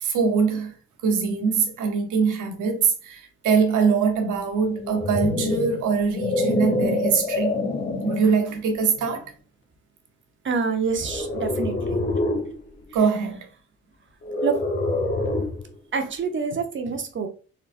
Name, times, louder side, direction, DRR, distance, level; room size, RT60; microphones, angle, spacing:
voice 1, 0.0-0.7 1.0-7.7 8.0-9.2 12.9-13.5 15.3-15.5, right 5 dB, 80° right, 1.0 m, -23 dB
sound 1, 4.7-8.3 9.0-9.2 11.0-12.5 14.2-15.7, left 2 dB, 40° left, 1.0 m, -26 dB
voice 2, 10.4-12.0 14.4-14.6 15.9-17.3, right 5 dB, 40° right, 0.9 m, -26 dB
4.0 x 3.3 x 2.6 m
cardioid pair, 90°, 30 cm